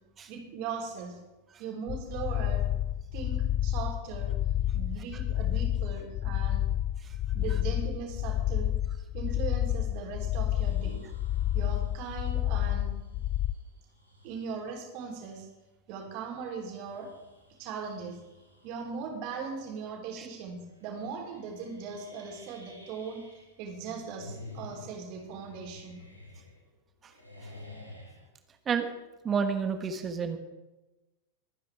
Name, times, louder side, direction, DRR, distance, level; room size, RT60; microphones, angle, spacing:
voice 1, 0.3-1.2 1.6-2.6 3.1-4.3 4.7-6.7 7.3-8.7 9.1-11.0 11.5-12.9 14.2-15.5 15.9-17.1 17.6-18.2 18.6-23.2 23.6-26.0, right 5 dB, 45° right, 0 dB, 3.9 m, -39 dB
sound 1, 1.9-13.5, left 12 dB, 35° left, 0.4 m, -30 dB
sound 2, 10.6-14.7 15.3-15.4 16.4-19.0 19.4-19.8 20.1-20.2 20.8-23.6 23.9-26.8 27.1-28.3, left 2 dB, 85° left, 2.5 m, -51 dB
voice 2, 29.2-30.4, right 6 dB, 25° right, 7 dB, 1.6 m, -30 dB
23.5 x 9.6 x 3.6 m, 1.1 s
figure-of-eight pair, 90°, 0 cm